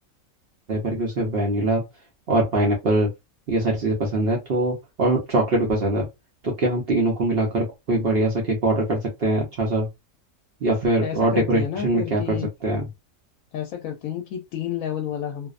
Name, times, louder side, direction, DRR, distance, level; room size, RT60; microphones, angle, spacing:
voice 1, 0.7-1.8 2.3-3.1 3.5-6.1 6.4-9.9 10.6-12.9, right 2 dB, 55° right, 0.7 m, -22 dB
voice 2, 11.0-12.5 13.5-15.5, left 9 dB, 75° left, 0.9 m, -30 dB
2.5 x 2.0 x 2.4 m
omnidirectional pair, 1.4 m